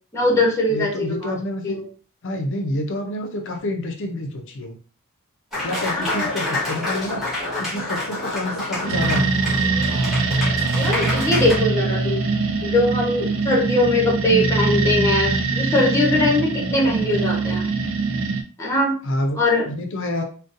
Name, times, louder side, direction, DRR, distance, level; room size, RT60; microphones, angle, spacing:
voice 1, 0.1-1.3 1.6-1.8 5.9-6.3 10.7-12.3 12.6-17.7 18.6-19.0 19.3-19.7, left 1 dB, 15° left, -2 dB, 1.0 m, -21 dB
voice 2, 0.7-1.8 2.2-4.8 5.6-7.2 7.6-9.3 19.0-19.4 19.7-20.2, left 1 dB, 60° left, 4 dB, 0.6 m, -28 dB
Applause, 5.5-11.6, left 2 dB, ahead, 1.4 m, -28 dB
sound 1, 8.8-18.4, right 3 dB, 65° right, 0.5 m, -22 dB
3.8 x 2.2 x 2.6 m, 0.40 s
head